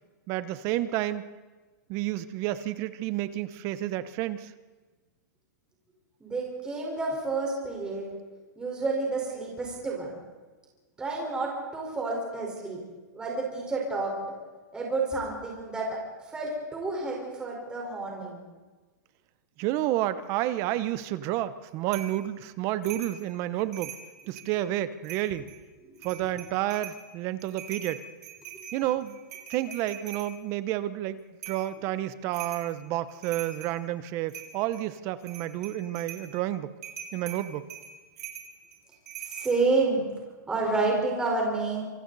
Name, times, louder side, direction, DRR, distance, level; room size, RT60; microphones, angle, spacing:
voice 1, 0.3-1.2 1.9-4.5 19.6-23.9 24.3-25.5 26.0-28.0 28.7-29.2 29.5-31.2 31.5-36.7 37.1-37.6, right 14 dB, 30° right, 14 dB, 0.9 m, -30 dB
voice 2, 6.2-8.1 8.6-10.2 11.0-12.8 13.1-14.3 14.7-18.4 25.8-26.0 39.3-40.1 40.5-41.8, right 3 dB, 10° right, -2 dB, 4.6 m, -29 dB
sound 1, 21.9-22.2 22.8-23.2 23.6-24.5 25.0-25.6 26.0-27.0 27.4-30.3 31.4-31.7 32.3-32.7 33.1-33.8 34.3-34.8 35.2-36.3 36.8-39.6, right 8 dB, 60° right, 5.1 m, -42 dB
27.0 x 27.0 x 4.1 m, 1.3 s
hypercardioid pair, 165°, 10 cm